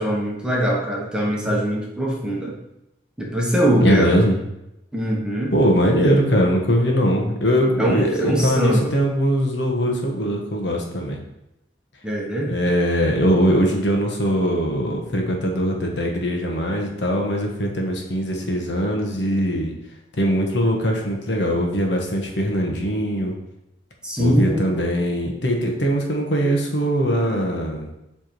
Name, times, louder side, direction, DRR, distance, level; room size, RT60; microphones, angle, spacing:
voice 1, 0.0-2.6 3.2-4.2 4.9-5.5 7.8-8.9 12.0-12.5 24.0-24.6, equal, 5° right, -3 dB, 1.1 m, -21 dB
voice 2, 3.8-4.4 5.5-11.2 12.5-19.7 20.2-23.3 24.2-27.9, equal, 70° left, 1 dB, 1.3 m, -21 dB
7.8 x 3.5 x 4.6 m, 0.87 s
head